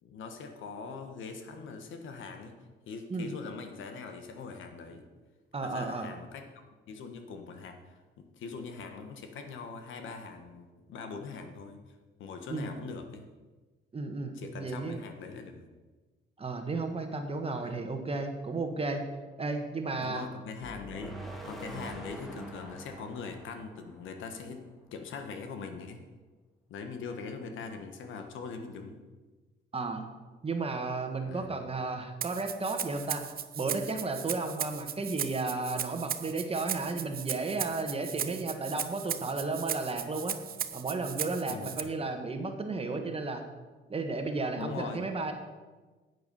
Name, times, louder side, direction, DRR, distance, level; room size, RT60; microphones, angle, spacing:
voice 1, 0.0-2.6 2.9-5.1 5.6-11.8 12.2-13.3 14.3-15.6 17.6-17.8 20.0-21.1 21.4-24.6 24.9-26.0 26.7-29.0 31.2-31.5 41.5-41.8 44.5-45.0, left 5 dB, 75° left, 6 dB, 1.3 m, -42 dB
voice 2, 5.5-6.1 12.5-12.7 13.9-15.0 16.4-19.0 19.4-20.2 29.7-30.0 30.4-33.2 33.5-40.3 40.7-43.4 43.9-45.3, right 3 dB, 30° right, 5 dB, 1.4 m, -33 dB
sound 1, 20.6-24.7, right 1 dB, ahead, 1.9 m, -45 dB
Rattle (instrument), 32.2-41.8, right 9 dB, 50° right, 0.7 m, -37 dB
9.7 x 8.1 x 5.5 m, 1.3 s
cardioid pair, 90°, 20 cm